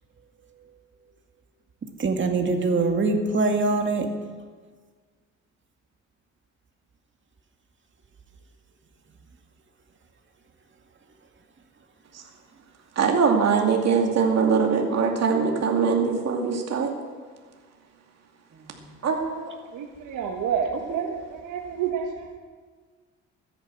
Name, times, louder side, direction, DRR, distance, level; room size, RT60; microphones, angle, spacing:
voice 1, 2.0-4.1, right 3 dB, 40° right, 3 dB, 2.2 m, -23 dB
voice 2, 13.0-16.9 19.0-19.5 20.9-21.0, right 5 dB, 60° right, 1 dB, 2.5 m, -22 dB
voice 3, 19.7-22.3, right 7 dB, 90° right, 2 dB, 1.3 m, -29 dB
14.5 x 10.5 x 7.7 m, 1.5 s
cardioid pair, 90°, 30 cm